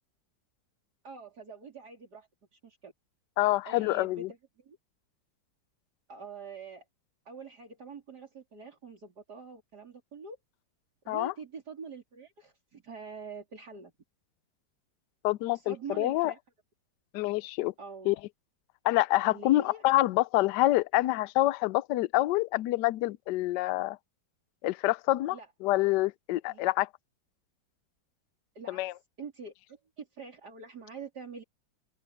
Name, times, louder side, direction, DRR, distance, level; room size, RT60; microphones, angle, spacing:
voice 1, 1.0-2.9 3.7-4.8 6.1-6.8 7.3-10.4 11.0-13.9 15.5-16.4 17.8-18.1 19.3-19.8 25.3-25.5 26.5-26.7 28.5-31.4, right 4 dB, 60° right, 4.0 m, -45 dB
voice 2, 3.4-4.3 11.1-11.3 15.2-16.3 17.1-17.7 18.1-18.2 18.8-24.0 24.6-26.9 28.7-28.9, left 17 dB, 75° left, 1.1 m, -27 dB
open air
omnidirectional pair, 2.0 m